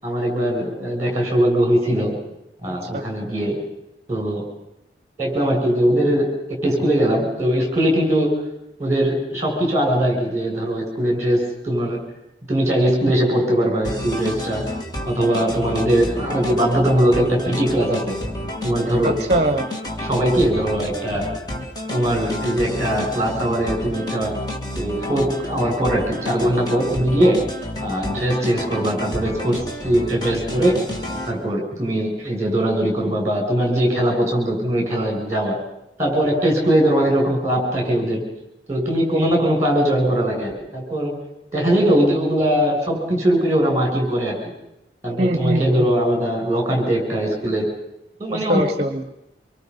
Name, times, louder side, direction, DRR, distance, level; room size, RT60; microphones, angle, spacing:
voice 1, 0.0-2.1 2.6-3.6 4.1-4.5 5.2-8.3 8.8-12.0 12.5-14.7 15.1-18.1 18.6-19.1 20.0-21.3 21.9-24.3 24.7-27.4 27.8-30.8 31.3-35.6 36.0-38.2 38.7-41.1 41.5-44.4 45.0-47.7 48.2-48.6, right 1 dB, 15° right, 1 dB, 7.2 m, -20 dB
voice 2, 2.7-3.0 19.0-19.7 45.2-45.9 48.3-49.1, right 1 dB, 40° right, 9 dB, 1.1 m, -23 dB
sound 1, 13.8-31.3, left 1 dB, 25° left, 2.5 m, -30 dB
26.0 x 24.0 x 5.6 m, 0.85 s
head